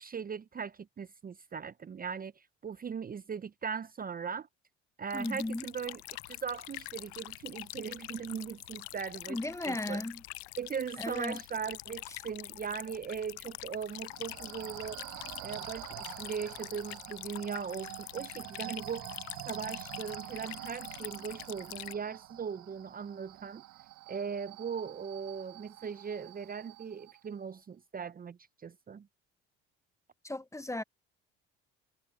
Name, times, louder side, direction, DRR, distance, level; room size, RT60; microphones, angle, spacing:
voice 1, 0.0-4.5 5.0-9.4 9.7-10.0 10.6-15.0 15.4-23.6 24.1-29.1, right 6 dB, 30° right, 0.7 m, -39 dB
sound 1, 5.1-21.9, left 23 dB, 90° left, 0.5 m, -45 dB
voice 2, 5.1-5.7 9.3-10.2 11.0-11.4 30.2-30.8, left 2 dB, 10° left, 1.0 m, -36 dB
sound 2, 13.9-27.3, right 17 dB, 70° right, 4.0 m, -47 dB
hypercardioid pair, 70°, 31 cm